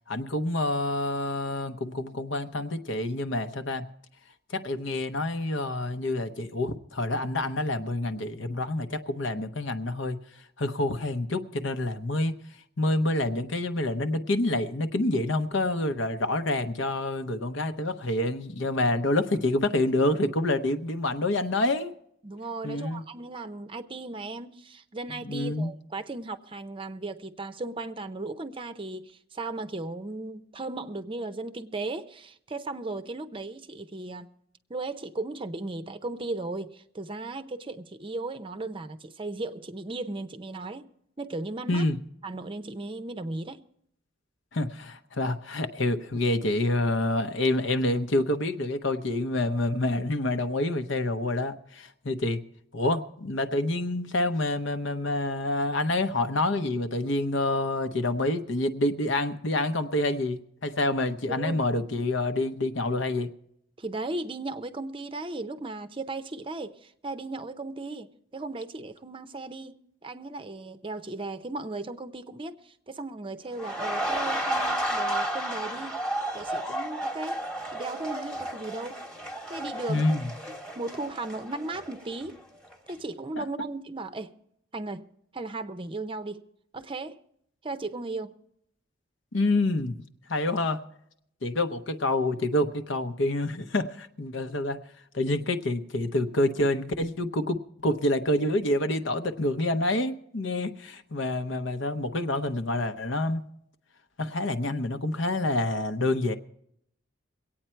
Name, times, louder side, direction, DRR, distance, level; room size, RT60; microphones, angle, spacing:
voice 1, 0.1-3.9 4.5-10.2 10.6-12.4 12.8-21.9 22.6-23.0 25.2-25.7 41.7-42.0 44.5-52.4 52.7-63.3 79.9-80.3 83.4-83.5 89.3-90.0 90.3-90.8 91.4-94.8 95.1-103.5 104.2-106.4, left 2 dB, 70° left, 0.9 m, -27 dB
voice 2, 22.2-34.3 34.7-40.9 41.2-41.8 42.2-43.6 61.3-61.6 63.8-76.0 76.3-79.0 79.5-80.2 80.7-82.4 82.9-84.3 84.7-86.4 86.7-87.2 87.6-88.3, right 2 dB, 25° right, 0.6 m, -36 dB
sound 1, 73.5-82.4 82.7-82.9, right 1 dB, 5° left, 1.1 m, -32 dB
23.0 x 8.8 x 4.5 m
head